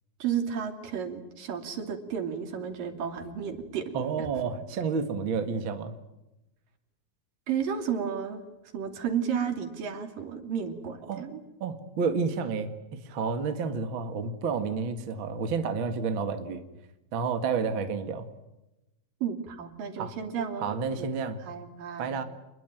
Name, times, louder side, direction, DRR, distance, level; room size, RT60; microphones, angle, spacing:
voice 1, 0.2-4.3 7.5-8.4 8.7-11.4 19.2-21.1 21.4-22.1, right 7 dB, 60° right, 7 dB, 4.3 m, -32 dB
voice 2, 3.9-6.0 11.1-11.3 11.6-16.6 17.1-18.3 20.0-20.1 20.6-21.4 22.0-22.2, right 5 dB, 40° right, 8 dB, 2.0 m, -30 dB
28.5 x 21.5 x 9.3 m, 0.94 s
omnidirectional pair, 4.4 m